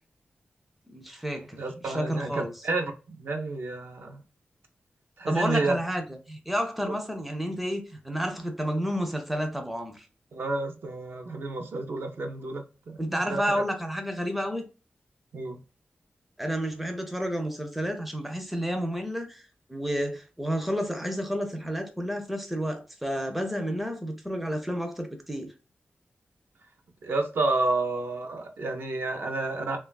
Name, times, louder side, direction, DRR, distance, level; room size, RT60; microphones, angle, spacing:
voice 1, 0.9-2.5 5.3-10.1 13.0-14.7 16.4-19.4 19.7-25.5, equal, 5° right, 0.4 m, -30 dB
voice 2, 1.6-4.2 5.2-5.8 10.3-13.4 15.3-15.6 27.0-29.8, right 3 dB, 70° right, 0.5 m, -30 dB
3.0 x 2.2 x 2.2 m
wide cardioid pair, 160°, 4 cm